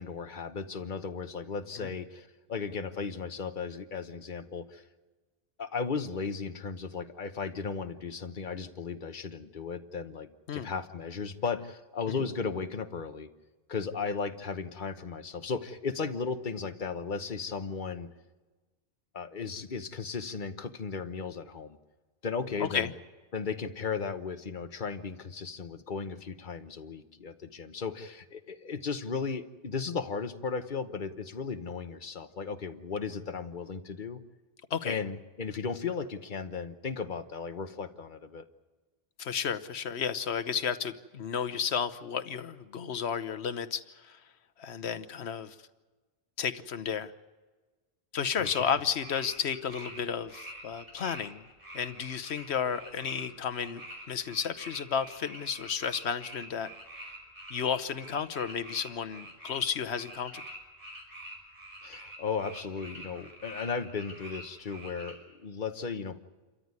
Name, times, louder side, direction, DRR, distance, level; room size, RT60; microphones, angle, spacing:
voice 1, 0.0-4.8 5.6-13.3 13.7-18.1 19.1-21.8 22.2-22.9 23.3-34.2 34.8-38.4 48.4-48.7 61.8-66.2, left 5 dB, 50° left, 9 dB, 1.2 m, -36 dB
voice 2, 39.2-44.2 44.6-45.5 46.4-47.1 48.1-51.4 51.7-53.8 54.1-56.7 57.5-60.4, left 7 dB, 80° left, 11 dB, 1.2 m, -32 dB
sound 1, 48.4-48.7 49.0-50.0 50.3-65.1, right 1 dB, 55° right, 6.1 m, -46 dB
28.0 x 14.0 x 9.6 m, 1.3 s
omnidirectional pair, 1.1 m